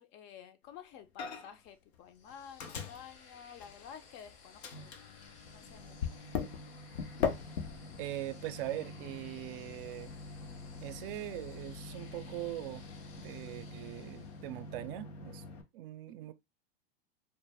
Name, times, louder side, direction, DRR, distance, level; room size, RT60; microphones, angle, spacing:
voice 1, 0.0-6.2 16.1-16.3, left 8 dB, 40° left, 0.5 m, -52 dB
Microwave oven, 1.2-1.7 1.9-4.2 4.6-15.6, left 6 dB, 85° left, 0.6 m, -42 dB
sound 1, 2.1-14.9, left 5 dB, 60° left, 0.9 m, -58 dB
voice 2, 8.0-10.1 10.8-12.8 13.1-15.4 15.7-16.3, right 14 dB, 60° right, 0.4 m, -41 dB
2.1 x 2.1 x 3.3 m
hypercardioid pair, 100°, 31 cm